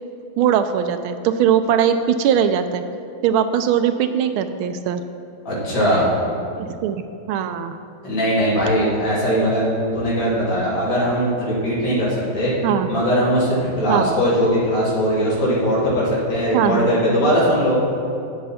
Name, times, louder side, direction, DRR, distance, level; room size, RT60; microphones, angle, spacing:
voice 1, 0.4-2.8 3.2-5.0 6.6-7.0 7.3-7.8 9.4-9.5 12.6-12.9 13.9-14.0 16.5-16.9, right 9 dB, 80° right, 9 dB, 1.4 m, -20 dB
voice 2, 5.5-6.1 8.0-9.7 9.9-12.5 12.9-17.8, equal, 55° left, -8 dB, 3.4 m, -20 dB
12.5 x 8.5 x 4.2 m, 2.6 s
omnidirectional pair, 2.4 m